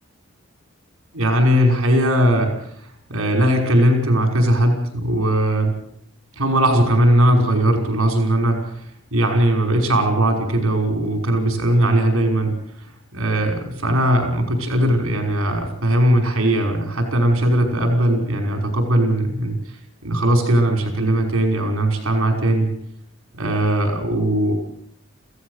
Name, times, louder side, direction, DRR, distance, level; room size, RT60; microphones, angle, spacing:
voice 1, 1.1-5.8 6.4-8.9 9.1-12.9 13.1-19.6 20.0-22.7 23.3-24.5, right 1 dB, 75° right, 3 dB, 5.5 m, -19 dB
27.5 x 16.5 x 6.6 m, 0.66 s
head